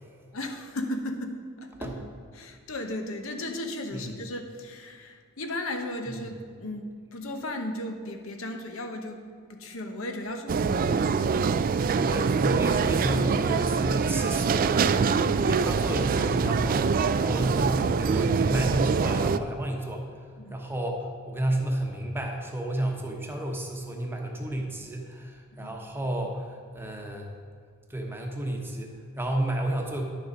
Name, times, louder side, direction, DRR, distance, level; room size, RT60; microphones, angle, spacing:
voice 1, 0.3-1.9 2.3-9.2 9.5-11.6 20.4-20.6 25.5-25.7, left 1 dB, 65° left, 4 dB, 1.0 m, -36 dB
sound 1, 10.5-19.4, right 5 dB, 40° right, 0.3 m, -24 dB
voice 2, 11.9-20.1 20.5-27.3 27.9-30.1, right 1 dB, 10° right, 1 dB, 1.1 m, -31 dB
10.5 x 7.0 x 5.2 m, 2.2 s
head